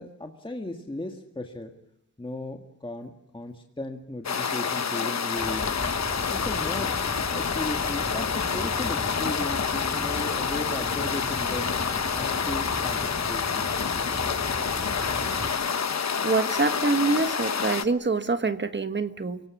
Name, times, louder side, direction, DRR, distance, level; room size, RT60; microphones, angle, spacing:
voice 1, 0.0-1.7 2.2-5.7 6.3-7.0 7.3-11.7 12.1-13.7, left 2 dB, 15° left, 3 dB, 1.9 m, -36 dB
sound 1, 4.2-17.8, left 6 dB, 60° left, 1.1 m, -28 dB
sound 2, 5.4-15.5, right 1 dB, 10° right, 4.6 m, -37 dB
voice 2, 16.2-19.4, right 3 dB, 35° right, 9 dB, 1.5 m, -25 dB
29.5 x 18.5 x 8.3 m, 0.76 s
wide cardioid pair, 125°, 30 cm